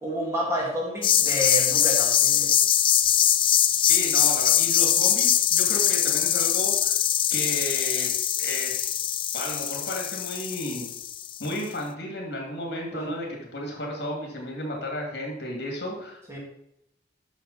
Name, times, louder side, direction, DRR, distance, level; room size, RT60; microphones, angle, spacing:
voice 1, 0.0-2.5 12.9-13.1 16.3-16.4, equal, 15° right, -4 dB, 2.5 m, -29 dB
sound 1, 1.0-11.5, left 10 dB, 30° left, 0.3 m, -22 dB
voice 2, 3.8-7.0 7.3-8.1 8.4-8.9 9.3-10.9 11.4-16.4, left 1 dB, 65° left, 0 dB, 2.7 m, -33 dB
9.0 x 6.7 x 4.3 m, 0.79 s
head